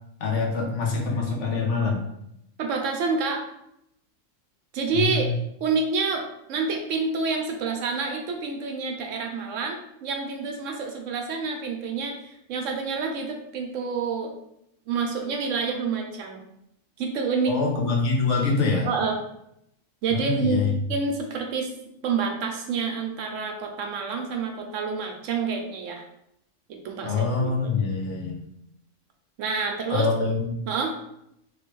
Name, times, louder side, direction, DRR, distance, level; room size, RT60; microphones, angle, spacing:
voice 1, 0.2-2.1 4.9-5.3 17.5-18.9 20.1-20.7 27.0-28.4 29.9-30.6, left 4 dB, 65° left, 0 dB, 1.0 m, -25 dB
voice 2, 2.6-3.4 4.7-5.3 5.6-14.3 14.9-16.5 17.0-17.5 18.8-19.2 20.0-20.6 20.9-21.7 22.0-26.0 26.7-27.7 29.4-30.1 30.7-31.0, right 4 dB, 70° right, 3 dB, 0.9 m, -28 dB
3.1 x 3.0 x 3.0 m, 0.77 s
omnidirectional pair, 1.4 m